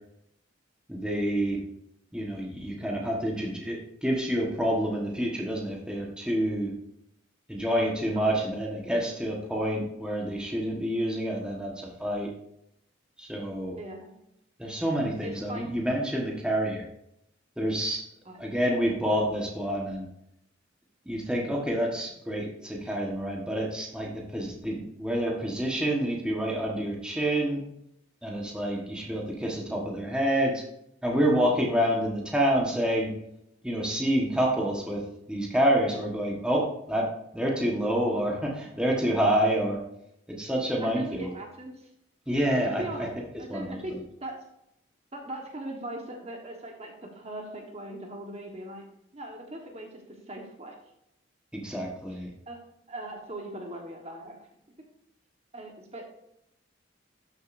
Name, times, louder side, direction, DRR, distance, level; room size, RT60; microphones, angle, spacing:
voice 1, 0.9-1.6 2.1-6.7 7.5-12.3 13.2-13.8 14.6-16.8 17.6-18.0 18.4-20.1 21.0-27.6 28.2-30.6 31.0-33.1 33.6-39.8 40.3-41.3 42.3-43.1 43.5-43.8 51.5-52.3, equal, 5° right, -2 dB, 1.3 m, -28 dB
voice 2, 8.1-8.6 13.8-14.2 15.2-15.6 18.2-18.5 35.8-36.1 40.8-41.9 42.5-44.3 45.1-48.8 49.1-49.9 50.3-50.7 52.1-52.2 52.5-52.6 52.9-54.4 55.5-56.0, right 1 dB, 35° right, 1 dB, 1.4 m, -40 dB
12.5 x 6.5 x 2.6 m, 0.78 s
head